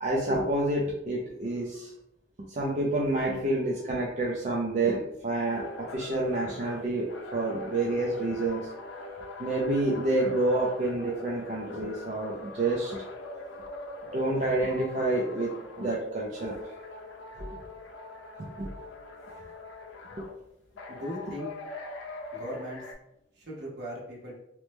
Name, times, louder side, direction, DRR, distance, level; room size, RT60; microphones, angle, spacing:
voice 1, 0.0-1.9 2.4-8.7 9.4-13.0 14.1-16.6 17.4-17.5 18.6-18.7 20.2-20.3, right 2 dB, 40° right, -4 dB, 0.5 m, -28 dB
sound 1, 5.5-16.0 16.3-20.3 20.8-22.9, left 2 dB, 90° left, 0.5 m, -43 dB
voice 2, 20.9-21.5 22.3-22.9 23.3-24.4, equal, 65° right, -3 dB, 1.0 m, -38 dB
2.9 x 2.1 x 3.2 m, 0.81 s
head